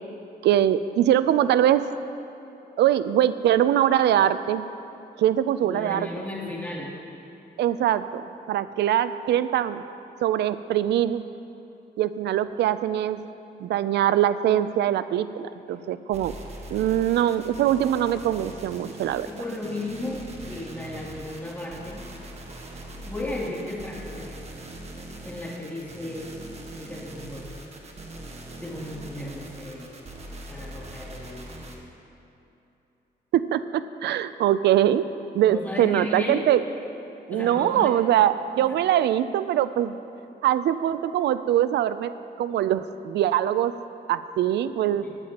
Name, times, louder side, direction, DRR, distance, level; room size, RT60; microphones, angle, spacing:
voice 1, 0.4-1.8 2.8-4.7 5.2-6.1 7.6-9.8 10.2-11.2 12.0-13.2 13.6-16.3 16.7-19.3 33.3-35.1 35.3-36.6 37.3-40.0 40.4-42.1 42.4-43.7 44.1-45.0, right 11 dB, 85° right, 13 dB, 0.4 m, -22 dB
voice 2, 5.7-6.9 19.2-22.0 22.4-22.6 23.0-24.4 25.2-26.3 26.7-27.5 28.6-29.9 30.5-31.8 35.5-36.5 37.3-37.9 44.9-45.1, left 1 dB, 10° left, -5 dB, 2.8 m, -35 dB
sound 1, 16.1-31.8, right 1 dB, 40° right, 1.4 m, -41 dB
19.5 x 9.1 x 2.9 m, 2.9 s
cardioid pair, 85°, 17 cm